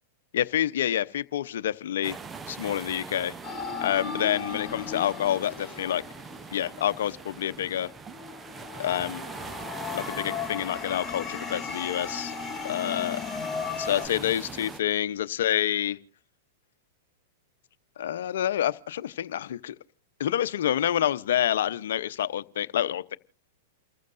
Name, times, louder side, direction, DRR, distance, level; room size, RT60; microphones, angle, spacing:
voice 1, 0.3-2.2 2.5-3.3 3.8-6.0 6.5-7.9 8.8-9.2 9.9-12.3 12.6-13.2 13.8-16.0 18.0-19.8 20.2-23.2, left 11 dB, 75° left, 0.8 m, -28 dB
sound 1, 2.0-14.8, right 5 dB, 20° right, 0.7 m, -42 dB
sound 2, 3.4-7.5 8.0-14.1, left 6 dB, 10° left, 2.3 m, -36 dB
29.5 x 15.0 x 2.6 m
hypercardioid pair, 120°, 0 cm